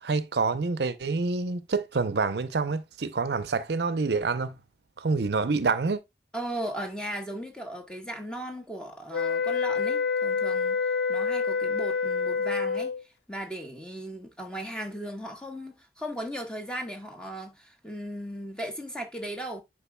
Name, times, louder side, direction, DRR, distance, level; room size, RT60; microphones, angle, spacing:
voice 1, 0.0-4.6 5.0-6.0, right 4 dB, 70° right, 0.6 m, -27 dB
voice 2, 6.3-10.8 11.1-12.9 13.3-19.6, equal, 5° left, 1.2 m, -37 dB
sound 1, 9.1-13.0, left 5 dB, 75° left, 0.5 m, -27 dB
10.0 x 4.9 x 2.2 m
head